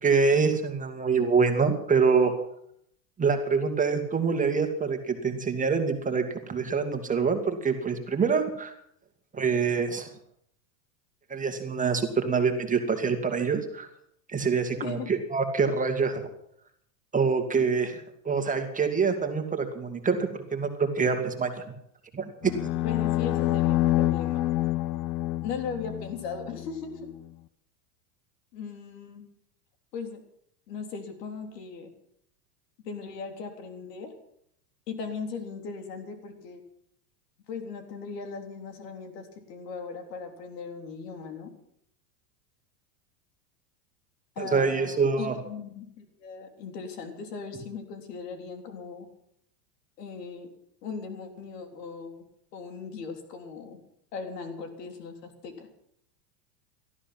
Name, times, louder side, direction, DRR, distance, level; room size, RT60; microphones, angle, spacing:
voice 1, 0.0-2.3 3.2-8.7 9.3-10.1 11.3-13.9 14.3-16.3 17.1-21.7 22.1-22.5 44.4-45.4, right 5 dB, 15° right, 5 dB, 2.1 m, -25 dB
voice 2, 14.8-15.1 17.6-17.7 22.8-24.4 25.4-27.1 28.5-29.2 29.9-30.2 30.7-31.9 32.9-34.1 34.9-36.6 37.5-41.5 44.4-49.1 50.0-50.5 50.8-52.2 52.5-53.8 54.1-55.7, left 5 dB, 75° left, 5 dB, 3.7 m, -38 dB
sound 1, 22.4-26.7, left 16 dB, 50° left, 0.9 m, -27 dB
18.0 x 13.0 x 6.0 m, 0.71 s
supercardioid pair, 120°, 48 cm